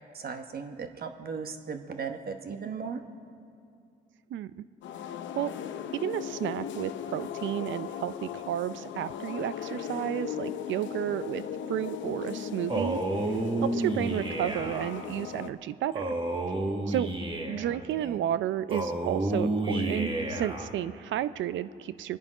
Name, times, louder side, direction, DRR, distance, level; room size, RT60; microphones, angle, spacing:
voice 1, 0.1-3.0 17.5-18.2, right 5 dB, 50° right, 6 dB, 1.1 m, -37 dB
voice 2, 4.3-4.6 5.4-5.5 5.9-13.0 13.6-16.1 16.9-17.1 17.5-22.2, right 11 dB, 70° right, 15 dB, 0.5 m, -32 dB
sound 1, 4.8-15.5, left 8 dB, 70° left, 0.7 m, -38 dB
Male speech man speaking, 12.7-14.9 15.9-17.8 18.7-20.7, right 2 dB, 25° right, 1.6 m, -30 dB
24.0 x 10.5 x 4.9 m, 2.4 s
cardioid pair, 90°, 20 cm